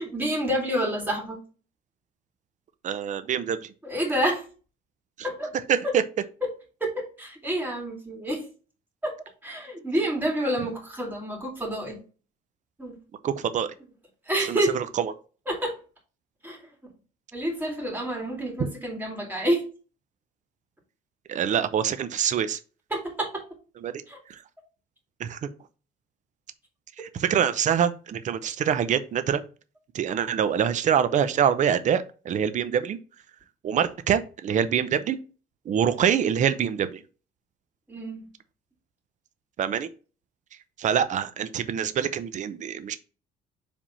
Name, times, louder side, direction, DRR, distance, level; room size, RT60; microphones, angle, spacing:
voice 1, 0.0-1.4 3.8-4.4 5.2-5.5 5.8-5.9 6.8-8.5 9.0-9.1 9.4-12.0 12.8-13.0 14.3-14.8 15.5-15.8 16.4-16.6 17.3-19.6 22.9-23.4 24.1-24.2 37.9-38.2, right 1 dB, 10° right, 1 dB, 2.3 m, -28 dB
voice 2, 2.8-3.7 5.7-6.0 13.2-13.7 14.4-15.1 18.6-18.7 21.3-22.6 23.8-24.0 24.3-24.4 25.2-25.5 27.0-29.4 29.9-33.0 33.6-35.2 35.7-37.0 39.6-39.9 40.8-43.0, right 8 dB, 45° right, 12 dB, 0.7 m, -25 dB
5.0 x 3.5 x 5.5 m, 0.36 s
cardioid pair, 110°, 17 cm